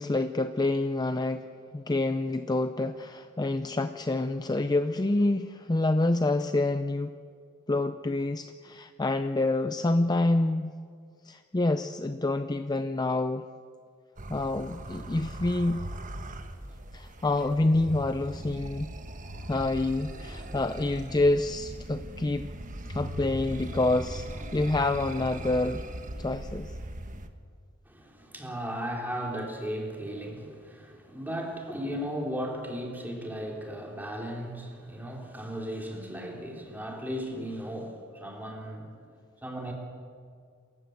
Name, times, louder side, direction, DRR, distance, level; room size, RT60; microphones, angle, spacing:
voice 1, 0.0-1.5 1.7-7.1 7.7-10.7 11.2-13.4 14.3-15.8 16.9-18.9 19.5-22.5 22.9-24.3 24.5-25.8 26.2-26.7, left 2 dB, 20° left, 10 dB, 0.5 m, -27 dB
sound 1, 14.2-27.3, right 1 dB, 40° right, 1.3 m, -39 dB
voice 2, 27.9-38.9 39.4-39.7, equal, 10° right, 0 dB, 3.4 m, -36 dB
27.0 x 15.0 x 7.9 m, 2.1 s
head